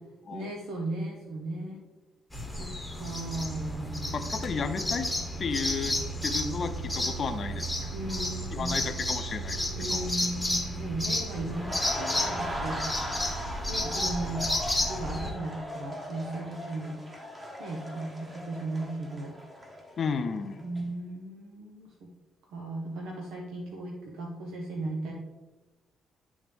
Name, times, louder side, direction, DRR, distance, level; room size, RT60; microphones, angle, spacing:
voice 1, 0.3-1.8 2.6-4.2 7.9-9.0 9.7-12.9 13.7-14.5 14.8-17.0 17.6-19.3 20.6-22.1 22.5-25.1, right 2 dB, 85° right, -1 dB, 0.9 m, -36 dB
sound 1, 2.3-15.3, left 1 dB, 5° left, 1.1 m, -32 dB
voice 2, 4.1-5.1 5.4-6.0 6.2-7.9 8.5-10.1 20.0-20.7, left 5 dB, 50° left, 8 dB, 0.6 m, -33 dB
sound 2, 11.4-20.3 20.6-20.8, equal, 20° right, 1.4 m, -38 dB
10.5 x 3.5 x 3.4 m, 1.2 s
cardioid pair, 90°, 0 cm